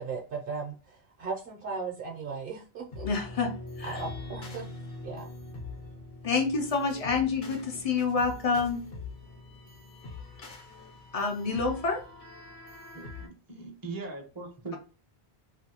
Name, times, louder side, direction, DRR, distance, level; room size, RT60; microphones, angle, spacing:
voice 1, 0.0-3.1 3.8-4.6 5.0-5.3, right 4 dB, 65° right, -1 dB, 0.8 m, -37 dB
sound 1, 2.9-13.3, left 3 dB, 75° left, 1.0 m, -43 dB
voice 2, 3.0-4.0 6.2-8.8 11.1-12.0, left 4 dB, 45° left, 4 dB, 0.5 m, -28 dB
voice 3, 12.9-14.8, right 3 dB, 25° right, 3 dB, 0.5 m, -40 dB
2.6 x 2.5 x 2.8 m, 0.37 s
omnidirectional pair, 1.1 m